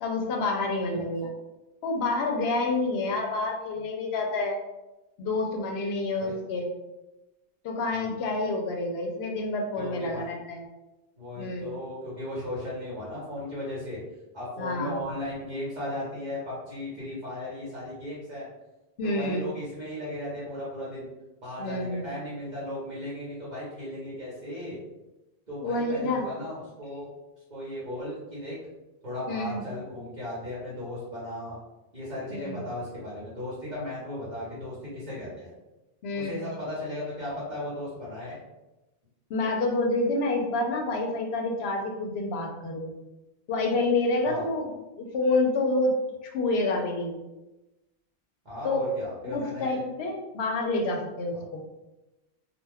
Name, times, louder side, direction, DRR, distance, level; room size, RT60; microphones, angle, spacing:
voice 1, 0.0-1.3 1.8-4.6 5.2-6.7 7.6-10.6 11.4-11.7 14.6-15.0 19.0-19.4 21.6-22.1 25.6-26.2 29.3-29.6 32.3-32.6 36.0-36.3 39.3-42.9 43.5-44.7 45.0-45.9 46.3-47.2 48.6-48.9 49.2-51.6, left 2 dB, 80° left, 2 dB, 0.8 m, -28 dB
voice 2, 9.8-10.3 11.1-14.0 14.3-18.4 19.0-21.1 21.4-24.8 25.5-27.1 27.5-28.6 29.0-31.6 31.9-35.5 36.1-38.4 44.2-44.5 48.4-49.8 51.3-51.5, left 1 dB, 45° right, -8 dB, 1.0 m, -36 dB
2.3 x 2.2 x 3.3 m, 1.0 s
omnidirectional pair, 1.0 m